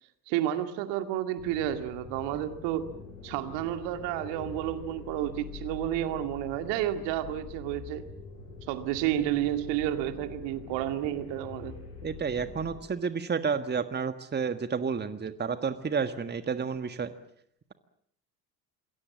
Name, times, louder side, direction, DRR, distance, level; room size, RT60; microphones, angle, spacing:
voice 1, 0.3-2.9 3.2-8.1 8.7-11.8, right 12 dB, 60° right, 9 dB, 2.3 m, -31 dB
sound 1, 1.4-12.8, left 5 dB, 70° left, 8.0 m, -45 dB
voice 2, 12.0-17.1, right 6 dB, 20° right, 11 dB, 1.6 m, -31 dB
27.5 x 22.0 x 7.4 m, 0.68 s
figure-of-eight pair, 60°, 48 cm